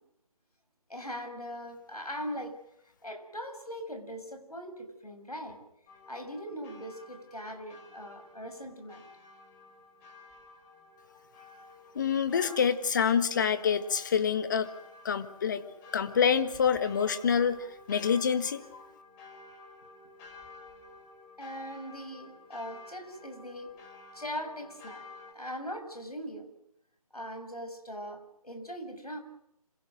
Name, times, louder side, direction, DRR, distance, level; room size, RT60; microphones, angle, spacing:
voice 1, 0.9-2.6 3.0-5.6 6.1-9.1 12.3-12.6 21.4-23.7 24.1-25.0 25.3-26.5 27.1-29.2, equal, 85° left, 7 dB, 6.5 m, -40 dB
sound 1, 5.9-25.3, left 3 dB, 15° left, 3.6 m, -52 dB
voice 2, 11.9-14.7 15.0-15.6 15.9-18.8, left 7 dB, 30° left, 11 dB, 1.7 m, -27 dB
28.5 x 27.0 x 6.5 m, 0.80 s
figure-of-eight pair, 155°, 19 cm